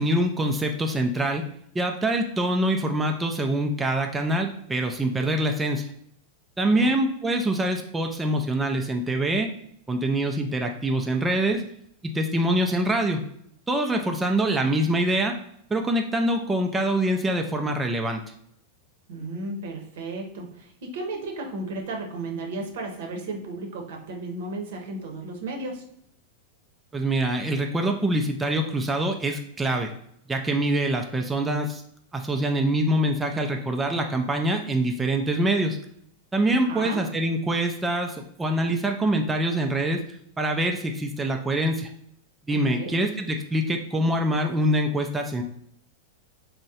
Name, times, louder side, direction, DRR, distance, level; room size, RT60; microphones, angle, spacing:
voice 1, 0.0-1.4 1.7-5.9 6.6-9.5 9.9-11.6 12.0-13.2 13.7-15.4 15.7-18.2 26.9-29.9 30.3-31.8 32.1-35.8 36.3-40.0 40.4-41.9 42.5-45.4, right 1 dB, 10° right, 3 dB, 0.3 m, -24 dB
voice 2, 19.1-25.8 36.5-37.0 42.5-43.0, right 2 dB, 75° right, 2 dB, 0.7 m, -34 dB
3.5 x 2.1 x 2.7 m, 0.70 s
hypercardioid pair, 125°, 0 cm